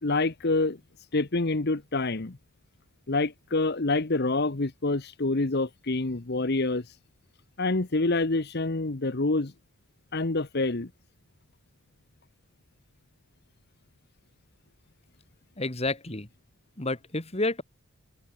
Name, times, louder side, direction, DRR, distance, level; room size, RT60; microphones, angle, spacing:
voice 1, 0.0-0.8 1.1-2.4 3.1-7.0 7.6-9.5 10.1-10.9, left 2 dB, 45° left, 1.0 m, -27 dB
voice 2, 15.6-16.3 16.8-17.6, left 2 dB, 30° left, 1.8 m, -30 dB
head